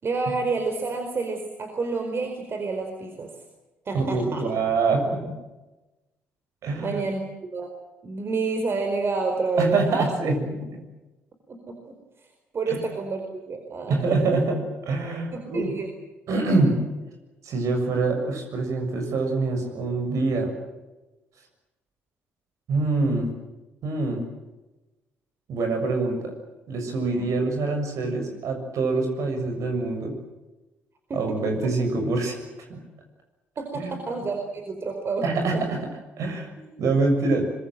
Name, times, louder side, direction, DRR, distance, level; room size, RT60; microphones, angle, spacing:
voice 1, 0.0-3.3 3.8-4.4 6.8-7.2 7.5-7.7 8.0-10.1 11.5-11.9 12.5-14.4 15.3-15.9 27.2-27.3 31.1-31.5 33.6-35.6 36.6-36.7, right 4 dB, 40° right, 4 dB, 4.7 m, -29 dB
voice 2, 3.9-5.4 6.6-7.0 9.6-10.8 12.7-12.8 13.9-15.7 16.3-16.8 17.4-20.5 22.7-23.3 23.8-24.2 25.5-26.3 26.7-30.1 31.1-32.4 32.7-32.8 33.8-33.9 35.2-35.9 36.2-36.5 36.8-37.4, right 3 dB, 55° right, 4 dB, 6.9 m, -25 dB
25.5 x 22.5 x 7.8 m, 1.1 s
figure-of-eight pair, 45°, 6 cm